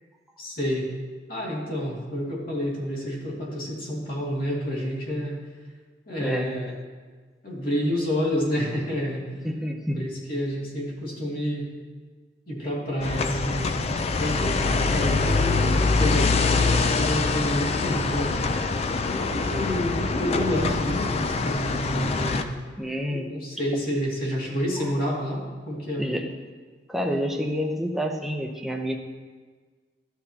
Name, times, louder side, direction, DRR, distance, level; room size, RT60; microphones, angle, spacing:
voice 1, 0.4-0.9 1.3-5.4 6.1-6.7 7.4-9.3 9.9-11.7 12.5-13.7 14.2-15.6 16.0-18.4 19.1-22.5 23.1-26.1, equal, 55° left, -4 dB, 2.3 m, -29 dB
voice 2, 6.2-6.5 9.4-10.1 22.8-23.3 24.8-24.9 26.0-26.3 26.9-29.0, equal, ahead, 1 dB, 0.6 m, -28 dB
sound 1, 13.0-22.4, left 3 dB, 35° left, 0.4 m, -24 dB
12.0 x 7.9 x 2.8 m, 1.5 s
head